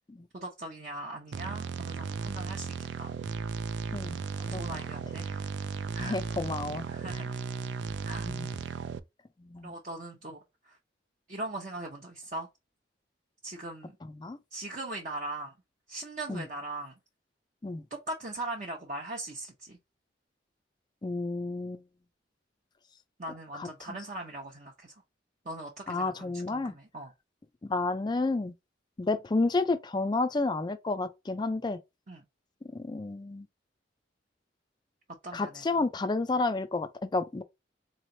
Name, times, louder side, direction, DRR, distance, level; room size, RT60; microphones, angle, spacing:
voice 1, 0.3-3.1 4.4-5.4 5.9-6.2 6.9-7.4 8.0-8.3 9.6-10.4 10.6-10.8 11.3-12.5 13.4-14.0 14.5-15.5 15.9-17.0 17.9-19.8 23.2-24.9 25.4-27.1 32.1-32.2 35.2-35.9, right 2 dB, 40° right, 0.7 m, -40 dB
sound 1, 1.3-9.0, right 5 dB, 65° right, 0.4 m, -35 dB
voice 2, 6.0-6.9 8.3-8.5 9.4-9.7 14.0-14.4 16.3-16.5 17.6-17.8 21.0-21.8 23.5-24.0 25.9-26.7 27.6-28.5 29.0-31.8 32.7-33.5 35.3-37.4, left 3 dB, 25° left, 0.3 m, -31 dB
3.9 x 3.1 x 2.7 m
head